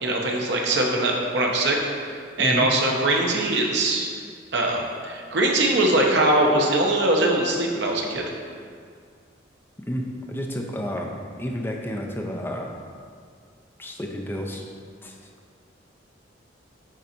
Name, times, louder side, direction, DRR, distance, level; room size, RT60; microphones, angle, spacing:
voice 1, 0.0-1.8 2.4-4.1 4.5-8.2, right 2 dB, 65° right, 0 dB, 1.0 m, -22 dB
voice 2, 2.4-2.7 9.9-12.7 13.8-14.6 15.0-15.2, equal, 10° left, 1 dB, 0.5 m, -30 dB
8.6 x 3.9 x 4.4 m, 2.1 s
head